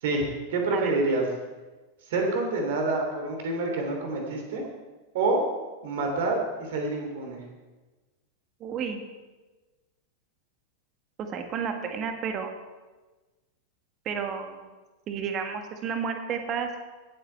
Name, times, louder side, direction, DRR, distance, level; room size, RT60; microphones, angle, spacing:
voice 1, 0.0-1.2 2.1-4.7 5.1-5.5 5.8-7.4, right 2 dB, 55° right, 2 dB, 3.1 m, -27 dB
voice 2, 8.6-9.0 11.3-12.5 14.0-14.7 15.1-16.8, right 6 dB, 35° right, 6 dB, 1.6 m, -31 dB
18.0 x 8.2 x 4.6 m, 1.2 s
figure-of-eight pair, 90°, 0 cm